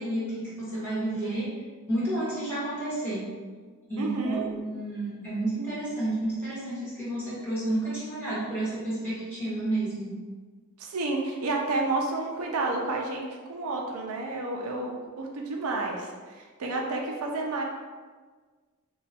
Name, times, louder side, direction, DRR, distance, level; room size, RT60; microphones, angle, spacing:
voice 1, 0.0-1.5 1.9-3.3 3.9-10.2, right 1 dB, 10° left, -11 dB, 1.4 m, -31 dB
voice 2, 4.0-4.4 10.8-17.6, right 2 dB, 75° right, 0 dB, 0.5 m, -30 dB
2.9 x 2.3 x 4.2 m, 1.5 s
head